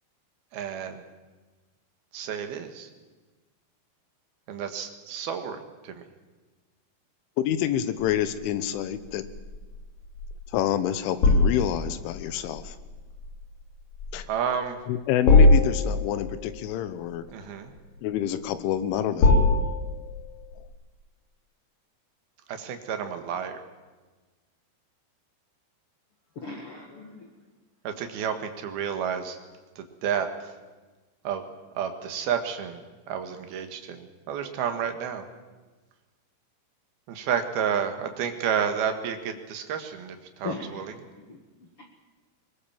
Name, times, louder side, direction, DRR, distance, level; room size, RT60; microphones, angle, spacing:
voice 1, 0.5-1.0 2.1-2.9 4.5-5.6 5.8-6.0 14.3-14.8 17.3-17.7 22.5-23.6 27.8-29.4 29.8-30.3 31.2-31.4 31.7-35.2 37.1-40.9, right 8 dB, 60° right, 7 dB, 3.2 m, -30 dB
voice 2, 7.4-9.2 10.5-12.8 14.1-14.3 14.9-17.2 18.0-19.4, left 10 dB, 90° left, 12 dB, 3.5 m, -27 dB
sound 1, 8.0-20.7, left 2 dB, 50° left, 4.6 m, -24 dB
voice 3, 26.3-27.3 40.4-41.4, left 4 dB, 65° left, 2 dB, 1.3 m, -38 dB
22.0 x 21.0 x 7.3 m, 1.3 s
omnidirectional pair, 5.4 m